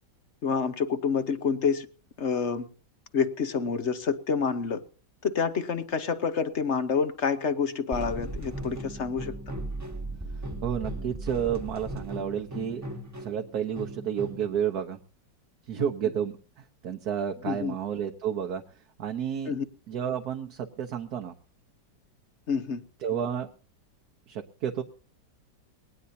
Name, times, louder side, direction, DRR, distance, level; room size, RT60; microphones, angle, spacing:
voice 1, 0.4-1.9 2.2-2.7 3.1-4.8 5.2-9.3 15.8-15.9 17.4-17.7 19.4-19.6 22.5-22.8, left 6 dB, 45° left, 1.2 m, -28 dB
sound 1, 7.9-14.6, right 1 dB, 10° right, 1.4 m, -37 dB
voice 2, 10.6-12.8 13.2-15.0 15.7-19.5 19.9-21.3 23.0-23.5 24.3-24.8, right 9 dB, 60° right, 1.5 m, -31 dB
21.0 x 18.0 x 2.8 m
omnidirectional pair, 2.0 m